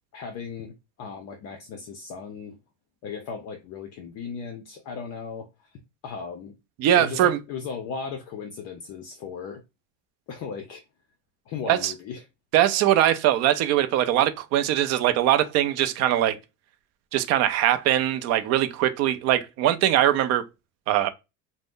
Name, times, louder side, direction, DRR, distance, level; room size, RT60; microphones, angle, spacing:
voice 1, 0.1-2.6 3.0-5.7 6.0-6.5 7.0-9.6 10.3-10.8 11.5-12.2, left 6 dB, 40° left, 0.5 m, -37 dB
voice 2, 6.8-7.4 11.7-11.9 12.5-16.4 17.1-20.4 20.9-21.1, right 12 dB, 45° right, 0.4 m, -21 dB
2.5 x 2.0 x 3.6 m
cardioid pair, 145°, 39 cm